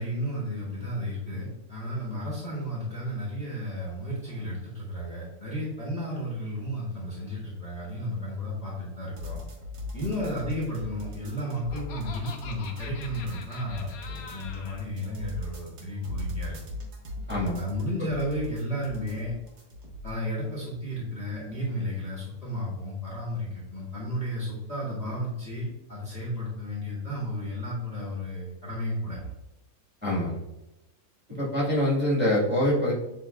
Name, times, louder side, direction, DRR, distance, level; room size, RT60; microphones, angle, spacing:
voice 1, 0.0-9.4 9.9-16.6 17.5-19.3 20.0-29.3, equal, 25° left, -6 dB, 1.0 m, -33 dB
sound 1, 9.2-20.2, left 2 dB, 75° right, 1.6 m, -39 dB
Laughter, 11.1-14.9, left 6 dB, 65° left, 1.0 m, -44 dB
voice 2, 17.3-17.6 30.0-30.4 31.4-32.9, left 1 dB, 5° right, -6 dB, 1.4 m, -25 dB
7.0 x 3.0 x 2.3 m, 0.95 s
omnidirectional pair, 1.8 m